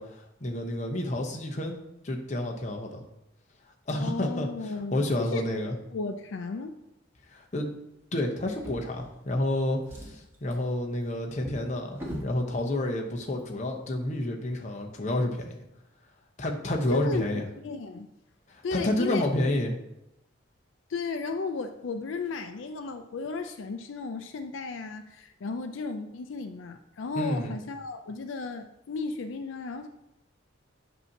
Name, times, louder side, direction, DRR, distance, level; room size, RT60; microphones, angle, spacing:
voice 1, 0.0-1.7 2.0-3.0 3.9-5.7 7.3-7.7 8.1-15.6 16.4-17.5 18.5-19.7 27.1-27.6, left 1 dB, 35° left, 1 dB, 0.8 m, -30 dB
voice 2, 4.0-5.0 5.3-5.5 5.9-6.8 16.9-18.1 18.6-19.3 20.9-29.9, left 4 dB, 80° left, 8 dB, 0.4 m, -34 dB
Drawer open or close, 8.5-9.5 9.8-12.4 13.3-13.4 13.8-13.9, equal, 10° right, 1.2 m, -42 dB
8.1 x 2.8 x 5.8 m, 0.85 s
head